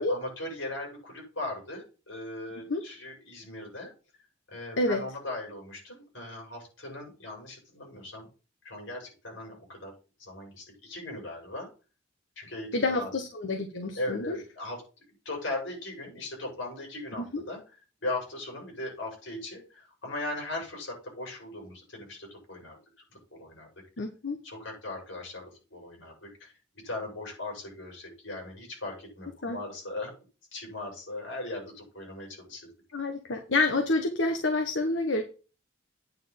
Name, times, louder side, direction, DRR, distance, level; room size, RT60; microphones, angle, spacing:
voice 1, 0.0-3.9 4.5-8.3 8.6-9.9 10.2-11.7 12.4-13.1 14.0-14.8 15.2-17.6 18.0-22.8 23.3-23.7 24.4-26.5 26.8-30.1 30.5-32.7, left 2 dB, 85° left, 0 dB, 6.4 m, -38 dB
voice 2, 12.7-14.3 17.2-17.4 24.0-24.4 29.4-29.6 32.9-35.2, left 2 dB, 70° left, 5 dB, 1.1 m, -28 dB
9.2 x 4.3 x 7.4 m, 0.35 s
head